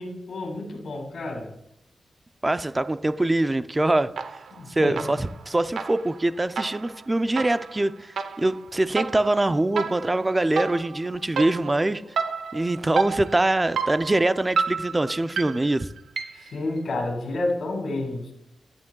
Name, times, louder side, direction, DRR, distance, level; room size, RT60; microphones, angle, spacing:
voice 1, 0.0-1.6 4.5-5.1 16.3-18.3, left 2 dB, 65° left, 2.0 m, -30 dB
voice 2, 2.4-4.1 4.7-12.0 12.5-15.9, right 2 dB, 20° right, 0.4 m, -24 dB
sound 1, 4.2-4.6 5.0-16.6, right 5 dB, 80° right, 0.7 m, -31 dB
11.5 x 9.4 x 2.3 m
wide cardioid pair, 115°, 0 cm